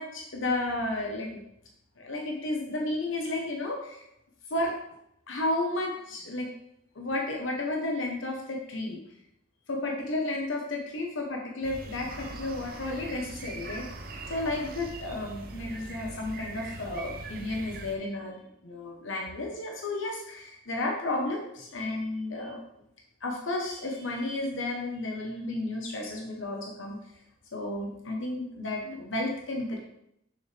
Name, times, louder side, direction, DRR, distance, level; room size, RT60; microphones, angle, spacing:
voice 1, 0.0-1.4 2.0-4.0 4.5-4.7 5.3-6.5 6.9-9.0 9.7-13.9 14.3-18.4 18.6-22.6 23.2-27.0 27.5-29.8, left 2 dB, 80° left, 1 dB, 1.1 m, -32 dB
sound 1, 11.6-18.0, right 2 dB, 45° right, 0.7 m, -41 dB
6.6 x 6.2 x 3.4 m, 0.78 s
head